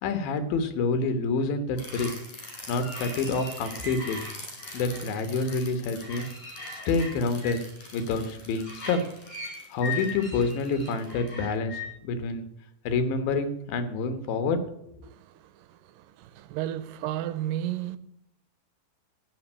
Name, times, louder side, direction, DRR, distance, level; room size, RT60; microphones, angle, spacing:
voice 1, 0.0-2.1 2.7-4.2 4.7-6.2 6.9-7.6 7.9-9.0 9.7-12.5 12.8-14.6, left 3 dB, 75° left, 3.0 m, -27 dB
sound 1, 1.8-11.9, left 3 dB, 50° left, 5.7 m, -39 dB
voice 2, 15.0-18.0, right 12 dB, 80° right, 2.1 m, -34 dB
15.0 x 5.4 x 9.5 m
omnidirectional pair, 4.3 m